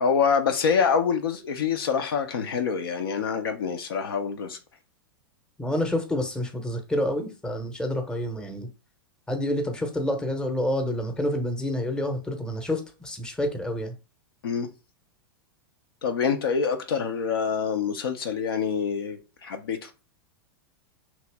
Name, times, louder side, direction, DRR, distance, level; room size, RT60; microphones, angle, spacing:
voice 1, 0.0-4.6 14.4-14.7 16.0-19.9, left 6 dB, 75° left, 0.6 m, -26 dB
voice 2, 5.6-8.7 9.3-14.0, left 1 dB, 5° left, 0.7 m, -28 dB
3.0 x 2.7 x 3.3 m
hypercardioid pair, 100°, 12 cm